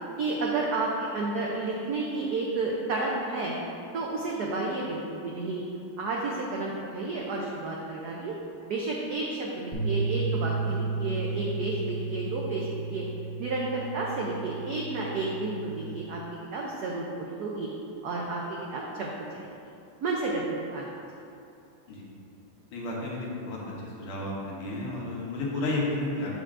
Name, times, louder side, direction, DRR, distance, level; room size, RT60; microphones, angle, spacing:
voice 1, 0.2-3.5 3.9-5.6 6.0-8.3 8.7-13.0 13.4-16.2 16.5-17.7 18.0-18.4 18.7-19.7 20.0-20.9, right 3 dB, 85° right, -2 dB, 0.8 m, -31 dB
sound 1, 9.7-16.0, right 4 dB, 20° left, 0.7 m, -33 dB
voice 2, 22.7-23.6 24.0-26.3, left 2 dB, 90° left, -4 dB, 1.9 m, -32 dB
7.2 x 5.6 x 2.5 m, 2.6 s
omnidirectional pair, 2.4 m